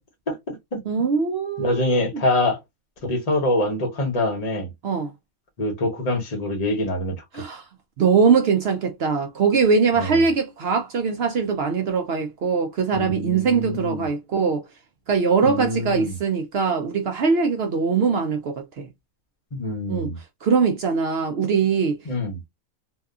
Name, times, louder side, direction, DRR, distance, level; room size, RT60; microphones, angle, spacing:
voice 1, 0.3-0.8 1.6-2.6 3.0-4.7 5.6-7.2 10.0-10.2 12.9-14.1 15.4-16.2 19.5-20.2 22.0-22.4, left 1 dB, 35° left, 0.8 m, -25 dB
voice 2, 0.9-2.0 4.8-5.1 7.3-7.6 8.0-14.6 15.1-18.9 19.9-20.1 20.4-22.0, right 5 dB, 65° right, 0.6 m, -22 dB
2.7 x 2.3 x 2.3 m
omnidirectional pair, 1.5 m